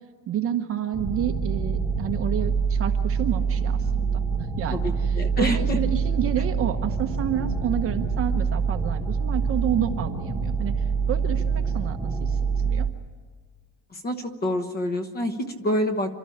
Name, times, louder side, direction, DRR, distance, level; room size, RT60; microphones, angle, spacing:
voice 1, 0.3-4.9 5.4-12.9, right 10 dB, 30° right, 6 dB, 1.0 m, -30 dB
sound 1, 0.9-12.9, right 5 dB, ahead, 0.6 m, -25 dB
voice 2, 4.7-5.8 13.9-16.2, left 1 dB, 20° left, 8 dB, 1.1 m, -27 dB
28.5 x 13.0 x 10.0 m, 1.5 s
cardioid pair, 175°, 45 cm